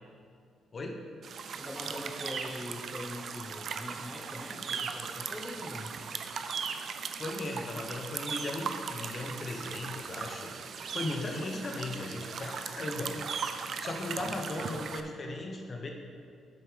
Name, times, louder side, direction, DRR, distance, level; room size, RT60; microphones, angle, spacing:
voice 1, 0.7-1.1 7.2-13.2 13.5-15.9, left 2 dB, 40° left, 2 dB, 1.0 m, -37 dB
sound 1, 1.2-15.0, right 6 dB, 55° right, 0.5 m, -38 dB
voice 2, 1.6-6.0, left 1 dB, 5° left, 1 dB, 1.0 m, -42 dB
8.0 x 6.9 x 5.1 m, 2.3 s
cardioid pair, 90°, 0 cm